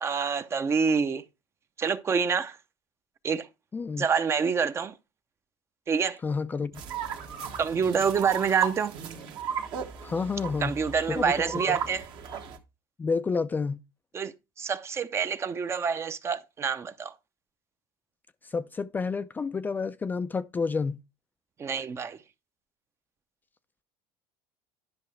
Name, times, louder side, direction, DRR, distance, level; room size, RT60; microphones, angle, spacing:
voice 1, 0.0-1.2 1.8-2.6 3.2-3.5 4.0-4.9 5.9-6.2 7.6-8.9 10.6-12.1 14.1-17.1 21.6-22.2, right 6 dB, 30° right, 0.6 m, -27 dB
voice 2, 3.7-4.1 6.2-6.7 10.0-10.8 11.1-11.3 13.0-13.8 18.5-21.0, left 4 dB, 20° left, 0.4 m, -29 dB
sound 1, 6.7-12.6, right 7 dB, 55° right, 1.4 m, -36 dB
10.5 x 5.4 x 3.2 m
supercardioid pair, 110°, 10 cm